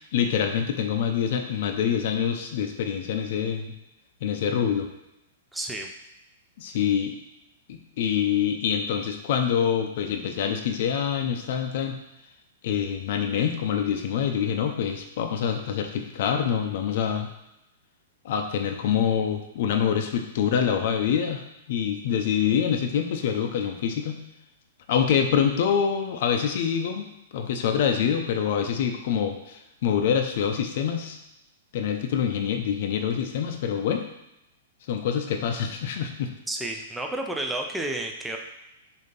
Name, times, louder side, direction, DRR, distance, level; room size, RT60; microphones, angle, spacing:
voice 1, 0.1-3.7 4.2-4.9 6.6-7.2 7.7-12.0 12.6-17.3 18.2-21.4 21.7-24.2 24.9-27.1 27.3-31.2 31.7-34.0 34.9-36.3, left 8 dB, 45° left, 5 dB, 0.6 m, -25 dB
voice 2, 5.5-5.9 36.5-38.4, right 1 dB, 5° right, 2 dB, 0.4 m, -31 dB
6.6 x 2.8 x 5.3 m, 0.88 s
supercardioid pair, 175°, 0 cm